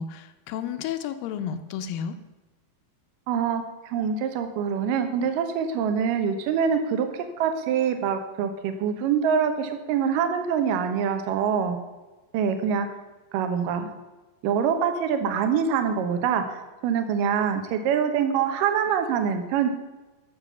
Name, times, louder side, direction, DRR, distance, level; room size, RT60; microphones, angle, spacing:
voice 1, 0.0-2.2, left 8 dB, 75° left, 10 dB, 2.3 m, -32 dB
voice 2, 3.3-11.8 12.3-12.9 13.3-13.9 14.4-19.7, right 7 dB, 70° right, 7 dB, 2.6 m, -25 dB
13.0 x 6.9 x 7.0 m, 1.2 s
omnidirectional pair, 4.5 m